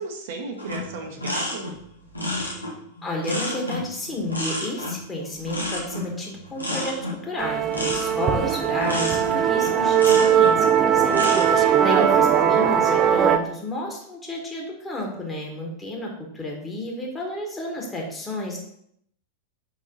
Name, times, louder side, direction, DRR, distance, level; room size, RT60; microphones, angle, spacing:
voice 1, 0.0-1.7 11.8-12.3, right 4 dB, 55° right, 3 dB, 0.9 m, -33 dB
sound 1, 0.6-10.6 11.0-11.6, left 1 dB, 85° left, 1.3 m, -31 dB
voice 2, 3.0-18.6, left 1 dB, 15° left, -1 dB, 1.7 m, -31 dB
Musical instrument, 7.4-13.4, right 8 dB, 30° right, 0.5 m, -19 dB
5.7 x 4.1 x 4.1 m, 0.70 s
figure-of-eight pair, 90°, 0 cm